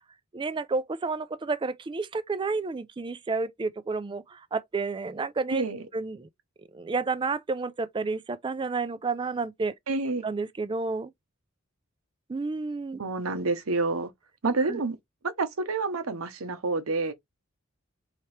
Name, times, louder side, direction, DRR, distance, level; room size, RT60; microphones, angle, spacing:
voice 1, 0.3-5.7 5.9-6.3 6.7-9.7 10.2-11.1 12.3-13.0 14.7-14.8, right 4 dB, 25° right, 0.3 m, -30 dB
voice 2, 5.5-5.8 9.9-10.3 13.0-14.1 14.4-15.0 15.2-17.1, right 3 dB, 85° right, 0.8 m, -28 dB
4.3 x 2.8 x 3.2 m
head